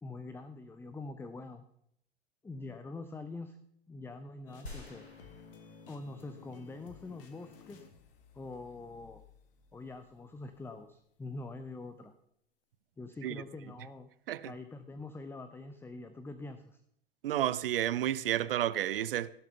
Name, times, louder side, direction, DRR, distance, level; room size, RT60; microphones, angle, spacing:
voice 1, 0.0-1.6 2.4-3.6 3.9-5.1 5.9-7.9 8.3-9.2 9.7-12.1 13.0-14.1 14.4-16.8, left 3 dB, 5° left, 0.7 m, -44 dB
sound 1, 4.5-11.3, left 6 dB, 60° left, 1.9 m, -56 dB
sound 2, 4.7-6.4 6.9-7.0, left 2 dB, 85° left, 2.9 m, -49 dB
voice 2, 17.2-19.3, right 12 dB, 60° right, 0.7 m, -31 dB
17.0 x 7.2 x 5.6 m
figure-of-eight pair, 90°, 31 cm